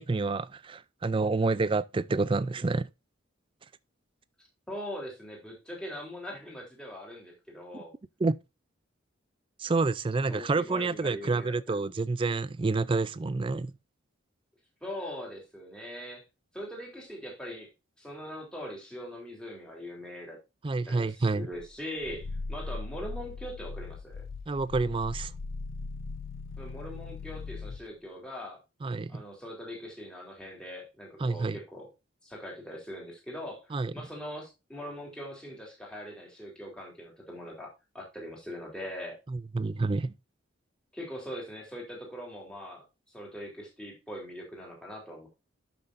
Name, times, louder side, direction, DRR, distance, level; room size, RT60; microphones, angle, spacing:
voice 1, 0.0-2.9 8.2-8.4 9.6-13.7 20.6-21.5 24.5-25.3 28.8-29.2 31.2-31.6 33.7-33.9 39.3-40.1, right 3 dB, 25° right, 0.3 m, -28 dB
voice 2, 4.7-7.9 10.1-11.9 14.8-16.2 16.5-17.7 18.0-20.4 20.9-24.2 26.6-28.6 29.1-31.9 32.2-37.7 37.9-39.2 40.9-42.8 43.1-45.3, equal, 5° left, 3.5 m, -41 dB
Growling, 21.5-27.9, left 3 dB, 70° left, 0.4 m, -39 dB
12.0 x 5.9 x 2.6 m
head